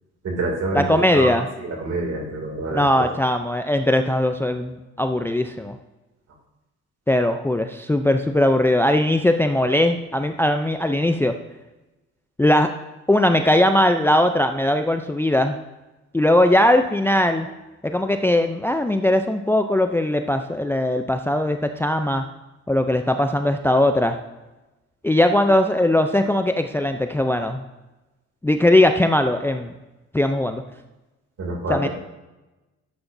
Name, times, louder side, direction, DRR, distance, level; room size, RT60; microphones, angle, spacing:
voice 1, 0.2-1.3 1.6-3.0 31.4-31.9, right 2 dB, 55° right, 1 dB, 2.5 m, -27 dB
voice 2, 0.7-1.5 2.7-5.8 7.1-11.4 12.4-12.7 13.1-15.6 16.1-17.5 17.8-22.2 22.7-24.2 25.0-27.6 28.4-29.7 30.1-30.6 31.7-31.9, left 1 dB, 10° left, 7 dB, 0.4 m, -19 dB
11.5 x 8.1 x 2.6 m, 1.1 s
cardioid pair, 90°, 30 cm